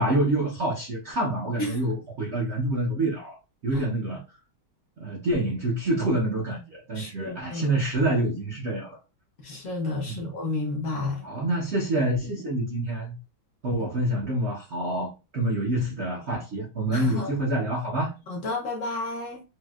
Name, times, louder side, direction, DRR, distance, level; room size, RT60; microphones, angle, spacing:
voice 1, 0.0-4.2 5.0-9.0 10.1-10.3 11.2-13.2 13.6-18.1, right 1 dB, 75° right, 0.6 m, -27 dB
voice 2, 6.9-7.7 9.4-11.3 16.9-17.3 18.3-19.4, left 2 dB, 75° left, 0.7 m, -31 dB
4.2 x 2.1 x 2.3 m
omnidirectional pair, 2.2 m